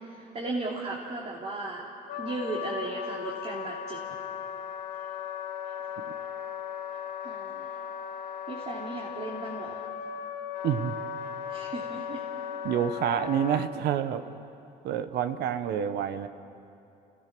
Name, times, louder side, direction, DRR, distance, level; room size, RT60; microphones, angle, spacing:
voice 1, 0.1-1.8 2.2-4.0 7.2-7.7 8.5-9.8 11.5-12.2, right 2 dB, 40° right, -4 dB, 3.1 m, -36 dB
Wind instrument woodwind instrument, 2.1-13.7, left 8 dB, 70° left, 1.3 m, -37 dB
voice 2, 10.6-10.9 12.6-14.2 14.8-16.3, right 9 dB, 75° right, 10 dB, 1.0 m, -28 dB
29.0 x 16.5 x 6.2 m, 2.7 s
cardioid pair, 110°, 17 cm